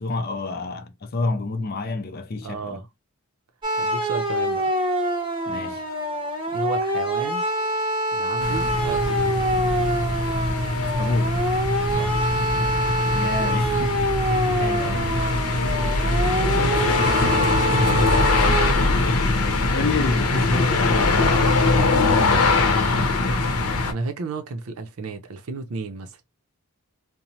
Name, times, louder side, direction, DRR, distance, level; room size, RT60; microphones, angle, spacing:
voice 1, 0.0-2.8 5.5-5.8 10.8-11.4 13.1-14.1 14.6-15.1 16.4-16.7 19.3-21.5 22.0-23.4, left 3 dB, 45° left, 0.4 m, -29 dB
voice 2, 2.4-2.9 3.8-4.7 6.5-7.4 8.1-9.4 12.0-12.3 13.1-13.6 17.2-18.3 23.7-26.2, right 3 dB, 75° right, 0.5 m, -33 dB
sound 1, 3.6-18.7, right 1 dB, 20° right, 0.8 m, -25 dB
sound 2, 8.4-23.9, left 3 dB, 80° left, 0.7 m, -22 dB
3.0 x 2.0 x 2.6 m
head